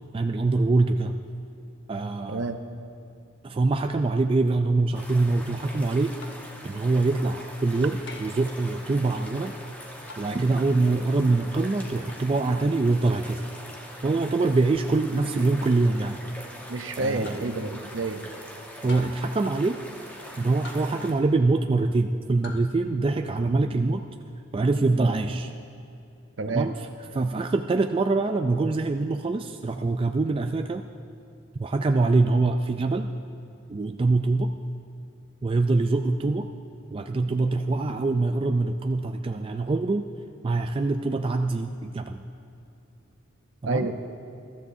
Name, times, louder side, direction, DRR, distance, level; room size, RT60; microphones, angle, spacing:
voice 1, 0.1-1.2 1.9-2.5 3.4-6.2 6.6-9.5 10.2-13.4 14.0-16.2 17.0-17.4 18.8-19.8 20.4-24.0 24.5-25.5 26.5-26.7 27.1-30.8 31.6-33.1 33.7-34.5 35.4-36.5 36.9-40.1 40.4-42.2 43.6-43.9, right 3 dB, 25° right, 6 dB, 0.3 m, -24 dB
sound 1, 4.9-21.1, equal, 10° left, 1.2 m, -43 dB
sound 2, 6.2-6.5 8.1-8.5 10.1-10.4 12.1-12.3 14.2-14.4 15.7-15.9 17.2-17.5 18.9-19.3 20.6-21.1 22.4-22.7, left 2 dB, 60° left, 1.2 m, -44 dB
voice 2, 16.7-18.3 26.4-26.7 43.6-43.9, right 3 dB, 65° right, 7 dB, 0.8 m, -29 dB
21.5 x 13.0 x 2.7 m, 2.6 s
head